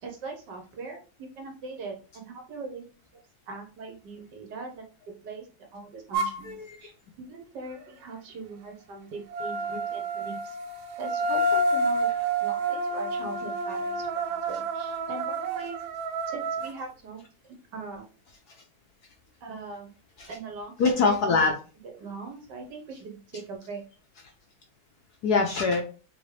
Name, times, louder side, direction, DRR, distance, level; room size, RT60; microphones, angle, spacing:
voice 1, 0.0-2.8 3.5-4.9 5.2-5.5 5.7-6.9 7.2-10.6 11.0-15.8 16.3-18.1 19.4-19.9 20.3-21.0 21.8-23.8, right 4 dB, 65° right, 3 dB, 1.4 m, -41 dB
sound 1, 6.1-6.4 9.3-16.7, right 2 dB, 80° right, 1.4 m, -29 dB
voice 2, 6.4-6.9 20.2-20.3 20.8-21.5 25.2-25.8, left 4 dB, 70° left, 2 dB, 1.0 m, -23 dB
3.9 x 3.4 x 3.2 m, 0.36 s
omnidirectional pair, 2.2 m